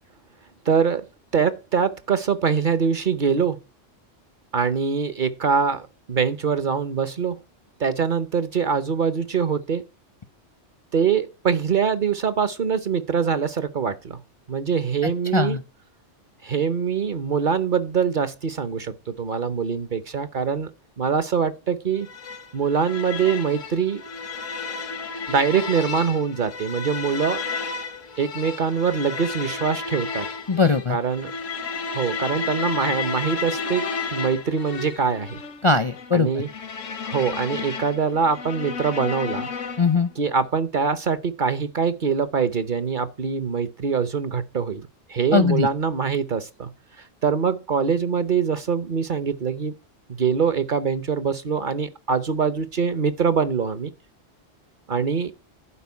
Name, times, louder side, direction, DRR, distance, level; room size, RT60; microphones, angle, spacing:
voice 1, 0.7-1.1 1.3-3.6 4.5-7.4 7.8-9.8 10.9-14.2 14.5-15.6 16.4-20.7 21.0-22.1 22.5-24.0 25.3-27.4 28.2-30.3 30.9-31.3 31.9-35.4 36.1-36.5 37.0-39.5 40.2-46.7 47.2-49.7 50.1-53.9 54.9-55.3, right 6 dB, 45° right, 0.9 m, -23 dB
voice 2, 15.0-15.6 30.5-31.0 35.6-36.3 39.8-40.1 45.3-45.7, left 4 dB, 35° left, 0.6 m, -20 dB
sound 1, 22.1-40.1, left 4 dB, 85° left, 1.6 m, -32 dB
11.5 x 5.1 x 8.2 m
omnidirectional pair, 1.3 m